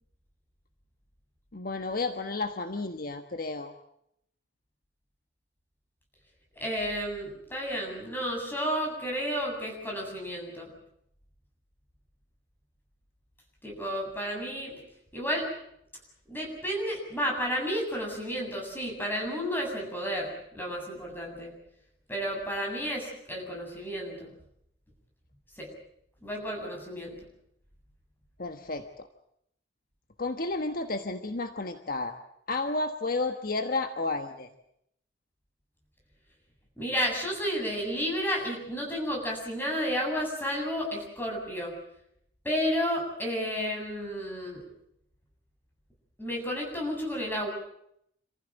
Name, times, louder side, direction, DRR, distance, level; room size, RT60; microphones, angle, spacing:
voice 1, 1.5-3.7 28.4-29.1 30.2-32.2 32.5-34.5, left 3 dB, 55° left, 6 dB, 1.3 m, -32 dB
voice 2, 6.5-10.7 13.6-14.8 15.1-15.5 16.3-21.5 22.1-24.3 25.6-25.7 26.2-27.1 36.8-41.7 42.4-44.6 46.2-47.5, equal, 10° left, 0 dB, 7.8 m, -32 dB
27.5 x 15.5 x 9.1 m, 0.75 s
head